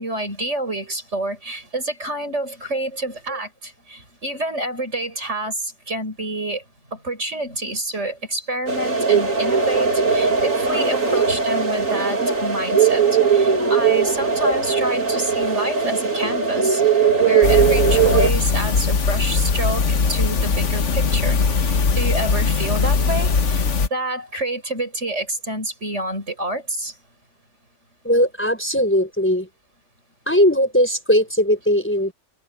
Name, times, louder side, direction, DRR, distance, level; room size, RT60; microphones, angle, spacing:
voice 1, 0.0-6.6 6.9-26.9, right 1 dB, 65° right, 6.8 m, -28 dB
sound 1, 8.7-18.3, right 6 dB, 85° right, 3.4 m, -19 dB
sound 2, 17.4-23.9, left 5 dB, 65° left, 1.6 m, -20 dB
voice 2, 28.0-29.5 30.3-32.1, equal, 10° left, 5.3 m, -19 dB
omnidirectional pair, 1.3 m